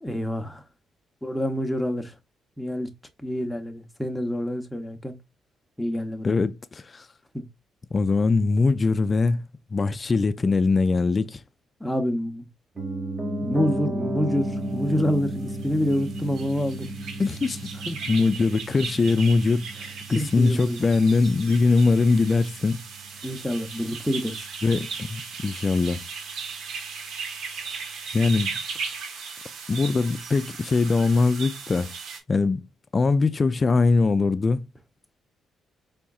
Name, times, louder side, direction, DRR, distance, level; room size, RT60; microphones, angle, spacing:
voice 1, 0.0-0.6 1.2-2.1 2.6-2.9 3.2-5.2 5.8-6.4 7.3-7.4 11.8-12.5 13.4-16.9 17.9-18.0 20.1-20.9 23.2-24.5, equal, 5° left, 0.8 m, -27 dB
voice 2, 6.2-7.1 7.9-9.4 9.7-11.4 17.2-17.7 18.1-22.8 24.6-26.0 28.1-28.5 29.7-31.9 32.3-32.7 32.9-34.6, left 4 dB, 30° left, 0.3 m, -22 dB
Piano, 12.8-22.8 23.1-23.2, right 1 dB, 20° right, 1.3 m, -33 dB
sound 1, 15.4-32.2, right 5 dB, 75° right, 1.0 m, -37 dB
4.3 x 3.5 x 2.3 m
cardioid pair, 90°, 0 cm